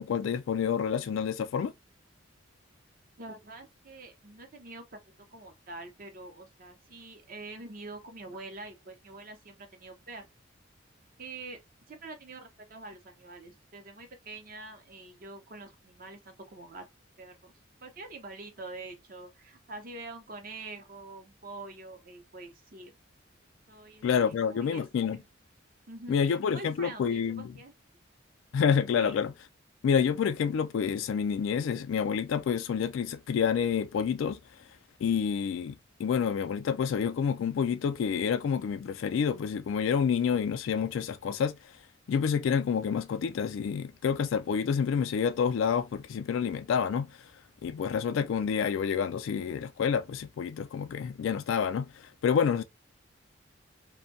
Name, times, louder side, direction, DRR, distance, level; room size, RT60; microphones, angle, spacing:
voice 1, 0.0-1.7 24.0-25.2 26.1-27.5 28.5-29.3 29.8-34.4 35.0-41.6 42.1-47.1 47.6-52.6, left 7 dB, 80° left, 0.3 m, -28 dB
voice 2, 3.2-5.0 5.3-10.3 11.2-11.6 11.9-16.9 17.2-17.5 17.8-22.9 23.7-25.3 25.9-27.7 28.9-29.2, right 2 dB, 45° right, 0.6 m, -45 dB
2.6 x 2.2 x 2.6 m
head